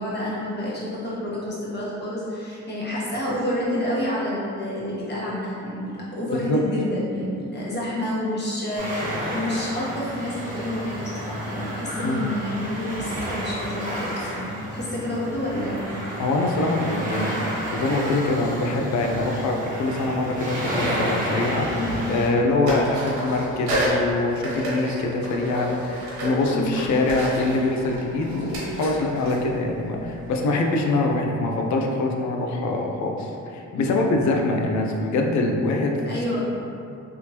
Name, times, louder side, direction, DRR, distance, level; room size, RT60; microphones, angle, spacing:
voice 1, 0.0-16.1 21.8-22.1 26.5-26.8 33.7-34.0 36.1-36.4, left 1 dB, 35° left, -7 dB, 1.2 m, -29 dB
sound 1, 8.8-22.3, right 1 dB, 25° right, 1.2 m, -31 dB
voice 2, 16.2-21.7 22.1-36.0, left 2 dB, 70° left, 1 dB, 0.5 m, -24 dB
sound 2, 20.1-21.4 21.6-22.4 22.6-30.4, equal, 70° right, 1.5 m, -31 dB
3.4 x 3.0 x 2.9 m, 2.6 s
cardioid pair, 90°, 30 cm